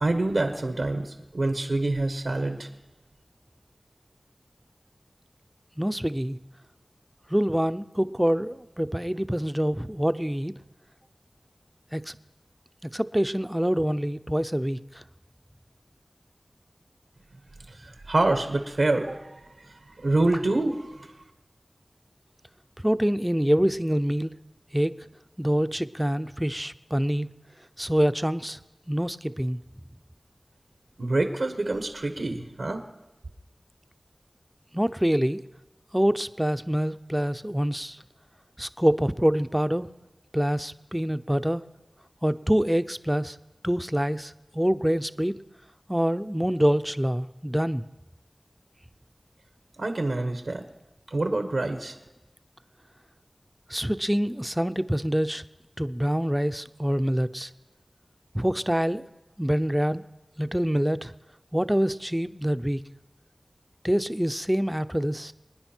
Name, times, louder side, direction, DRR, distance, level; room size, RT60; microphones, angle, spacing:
voice 1, 0.0-2.7 17.7-19.2 20.0-21.1 31.0-32.8 49.8-50.6 51.1-51.9, right 2 dB, 90° right, 6 dB, 1.2 m, -26 dB
voice 2, 5.8-6.4 7.3-10.5 11.9-12.1 12.8-14.8 22.8-24.3 24.7-24.9 25.4-27.3 27.8-28.6 28.9-29.6 34.7-35.4 35.9-38.0 38.6-39.9 40.3-41.6 42.2-43.4 43.6-45.4 45.9-47.8 53.7-55.4 55.8-57.5 58.3-59.0 59.4-60.0 60.4-61.1 61.5-62.8 63.8-65.3, equal, 10° right, 12 dB, 0.5 m, -25 dB
26.0 x 9.8 x 4.5 m, 1.0 s
wide cardioid pair, 45°, 0 cm